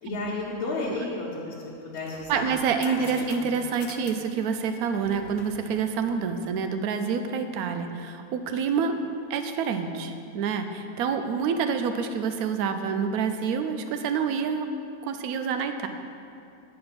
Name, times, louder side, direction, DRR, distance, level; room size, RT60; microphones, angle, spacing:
voice 1, 0.0-2.5 2.8-3.5, left 3 dB, 70° left, -6 dB, 1.3 m, -33 dB
sound 1, 1.9-6.8, left 6 dB, 85° left, 1.1 m, -47 dB
voice 2, 2.3-8.9 9.3-14.7 15.0-15.9, right 6 dB, 75° right, 7 dB, 1.0 m, -27 dB
8.4 x 4.3 x 5.7 m, 2.6 s
omnidirectional pair, 1.6 m